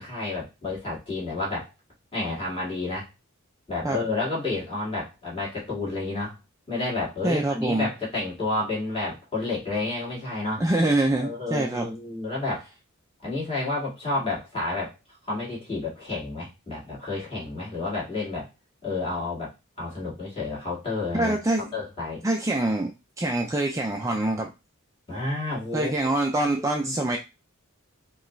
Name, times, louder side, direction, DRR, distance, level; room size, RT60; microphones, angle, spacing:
voice 1, 0.0-1.7 2.1-3.1 3.7-6.3 6.7-10.6 11.2-12.7 13.2-14.9 15.3-18.5 18.8-19.5 19.8-21.3 21.7-22.2 25.1-25.9 26.3-26.9, left 2 dB, 25° left, -6 dB, 2.0 m, -30 dB
voice 2, 7.2-7.9 10.6-11.9 21.1-21.7 22.2-22.9 23.2-24.5 25.7-27.2, right 2 dB, 15° right, 1 dB, 0.4 m, -25 dB
4.8 x 2.3 x 3.1 m, 0.26 s
head